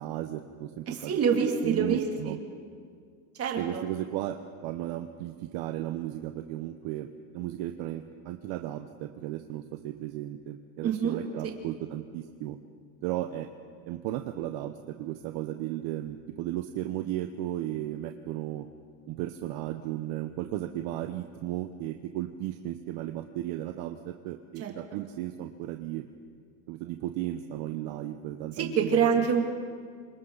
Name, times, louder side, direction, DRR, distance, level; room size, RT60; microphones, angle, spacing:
voice 1, 0.0-1.1 1.6-2.4 3.6-4.4 4.6-7.1 7.3-12.6 13.0-13.5 13.9-18.7 19.1-26.0 26.7-29.4, right 13 dB, 60° right, 7 dB, 1.0 m, -35 dB
voice 2, 0.9-2.3 3.4-3.8 10.8-11.5 24.6-24.7 28.6-29.4, right 6 dB, 35° right, 1 dB, 2.7 m, -26 dB
28.0 x 25.5 x 4.0 m, 2.1 s
cardioid pair, 150°, 43 cm